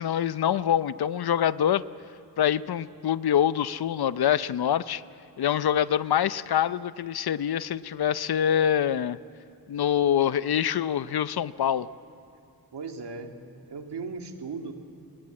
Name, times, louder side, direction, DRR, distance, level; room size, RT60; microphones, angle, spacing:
voice 1, 0.0-1.8 2.4-5.0 5.4-9.2 9.7-11.9, left 9 dB, 70° left, 16 dB, 0.7 m, -25 dB
voice 2, 12.7-13.4 13.7-14.7, right 4 dB, 90° right, 4 dB, 2.2 m, -37 dB
29.5 x 21.0 x 8.8 m, 2.6 s
wide cardioid pair, 130°, 39 cm